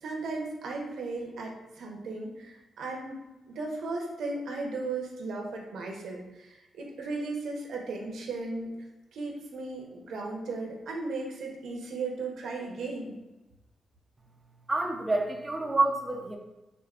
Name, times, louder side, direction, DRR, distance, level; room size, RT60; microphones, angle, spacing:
voice 1, 0.0-8.7 9.1-13.2, right 3 dB, 85° right, 1 dB, 0.7 m, -36 dB
voice 2, 14.7-16.4, right 2 dB, 15° right, 0 dB, 0.4 m, -28 dB
4.8 x 2.5 x 2.4 m, 1.0 s
wide cardioid pair, 135°, 0 cm